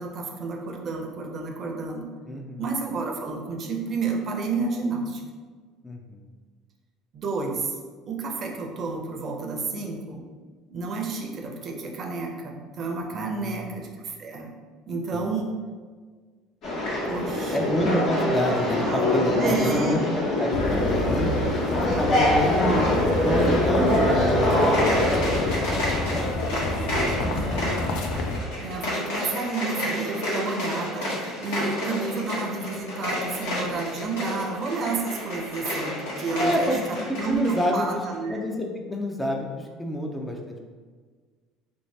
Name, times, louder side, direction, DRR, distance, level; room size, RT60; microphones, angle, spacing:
voice 1, 0.0-2.1 2.6-5.2 7.1-7.7 8.1-10.2 10.7-14.5 14.9-15.5 17.1-17.7 18.8-19.0 19.4-20.0 22.6-22.7 27.3-27.9 28.6-36.8 37.2-38.4, right 4 dB, 45° right, 1 dB, 0.6 m, -30 dB
voice 2, 2.3-2.6 5.8-6.3 13.1-13.7 15.1-15.2 17.5-21.3 21.8-22.9 23.2-27.7 36.4-38.0 38.3-40.6, left 1 dB, 10° left, 1 dB, 0.4 m, -28 dB
sound 1, 16.6-25.5, left 1 dB, 55° left, 1.1 m, -23 dB
sound 2, 20.5-28.4, left 2 dB, 75° left, 0.4 m, -29 dB
sound 3, 24.5-37.7, left 1 dB, 90° left, 1.3 m, -31 dB
3.1 x 2.7 x 3.2 m, 1.5 s
supercardioid pair, 100°, 0 cm